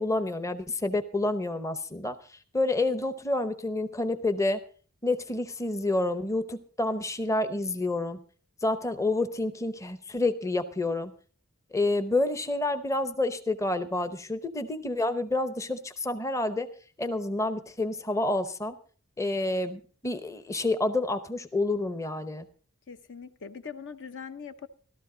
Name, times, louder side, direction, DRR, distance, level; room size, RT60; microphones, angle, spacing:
voice 1, 0.0-4.6 5.0-8.2 8.6-11.1 11.7-16.7 17.0-18.7 19.2-22.5, left 2 dB, 15° left, 10 dB, 0.8 m, -29 dB
voice 2, 22.9-24.7, left 6 dB, 55° left, 10 dB, 0.7 m, -41 dB
15.0 x 13.0 x 3.8 m, 0.41 s
head